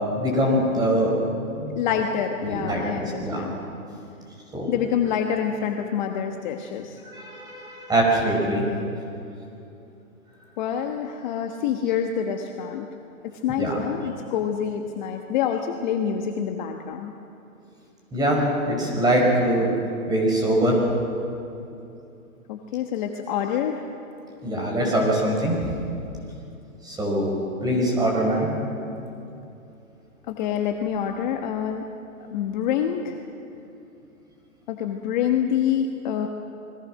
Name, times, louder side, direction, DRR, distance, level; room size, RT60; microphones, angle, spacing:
voice 1, 0.1-1.1 1.6-1.7 2.4-3.4 4.5-4.7 7.0-8.6 13.6-13.8 18.1-19.7 20.1-20.8 24.4-25.6 26.8-27.3 27.6-28.5, right 1 dB, 10° right, -1 dB, 5.8 m, -23 dB
voice 2, 1.7-3.6 4.7-7.0 10.6-12.9 13.4-17.1 22.5-23.9 30.3-31.8 32.2-33.2 34.7-36.3, left 8 dB, 35° left, 4 dB, 1.3 m, -26 dB
29.0 x 21.5 x 6.4 m, 2.7 s
hypercardioid pair, 150°, 42 cm